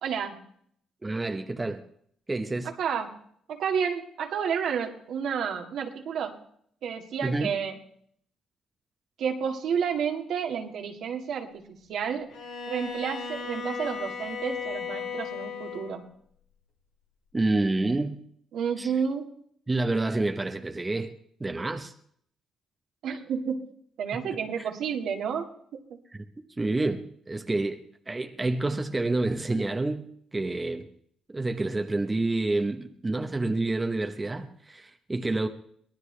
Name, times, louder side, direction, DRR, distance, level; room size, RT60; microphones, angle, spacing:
voice 1, 0.0-0.4 2.6-3.1 3.5-6.4 6.8-7.7 9.2-12.3 12.7-16.0 18.5-19.3 23.0-23.6 24.0-26.0, right 7 dB, 75° right, 2.0 m, -30 dB
voice 2, 1.0-1.8 2.3-2.7 7.2-7.5 17.3-18.2 18.8-18.9 19.7-21.1 21.4-21.9 24.1-24.2 24.6-24.7 26.1-30.9 31.3-35.5, right 2 dB, 20° right, 1.1 m, -28 dB
Bowed string instrument, 12.3-16.0, left 5 dB, 80° left, 2.6 m, -36 dB
23.5 x 17.5 x 3.3 m
cardioid pair, 90°, 0 cm